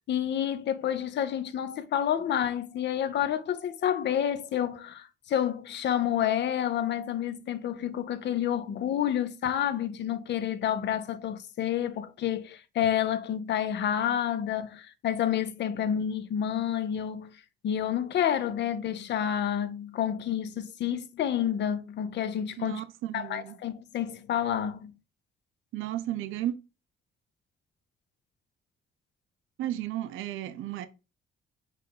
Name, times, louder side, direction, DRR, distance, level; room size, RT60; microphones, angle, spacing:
voice 1, 0.0-17.3 17.6-22.8 23.1-24.9, left 10 dB, 65° left, 0.6 m, -29 dB
voice 2, 22.6-23.6 25.7-26.5 29.6-30.9, right 13 dB, 85° right, 0.5 m, -34 dB
5.5 x 2.5 x 3.8 m
cardioid pair, 90°, 20 cm